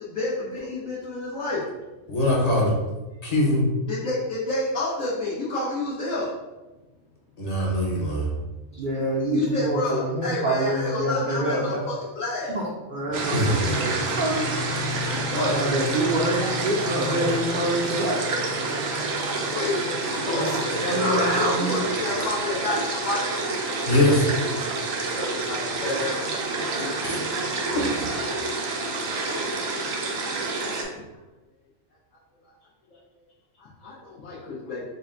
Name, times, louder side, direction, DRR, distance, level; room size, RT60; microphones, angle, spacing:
voice 1, 0.0-1.6 3.9-6.3 9.3-12.6 15.3-15.6 19.5-23.3 25.1-26.4 26.7-27.2 33.6-34.8, left 2 dB, 85° left, -9 dB, 1.2 m, -29 dB
voice 2, 2.1-2.7 3.2-3.7 7.4-8.3 13.3-13.6 23.9-24.3 27.0-27.2 27.7-28.1, left 1 dB, 35° left, -3 dB, 0.7 m, -22 dB
voice 3, 8.7-11.8 12.5-14.4 15.3-18.2 19.7-20.0 20.3-21.8, right 1 dB, 55° right, -3 dB, 0.6 m, -26 dB
sound 1, 13.1-30.8, right 2 dB, 85° right, 1.0 m, -28 dB
4.0 x 2.2 x 3.7 m, 1.1 s
omnidirectional pair, 1.3 m